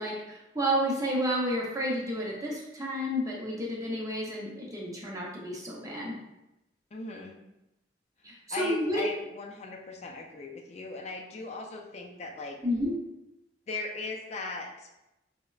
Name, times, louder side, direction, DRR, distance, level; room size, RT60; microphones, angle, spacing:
voice 1, 0.0-6.2 8.2-9.0 12.6-13.0, equal, 20° right, -3 dB, 0.7 m, -31 dB
voice 2, 6.9-7.4 8.5-12.6 13.7-14.9, left 3 dB, 40° left, 2 dB, 0.4 m, -38 dB
4.8 x 2.1 x 2.3 m, 0.92 s
head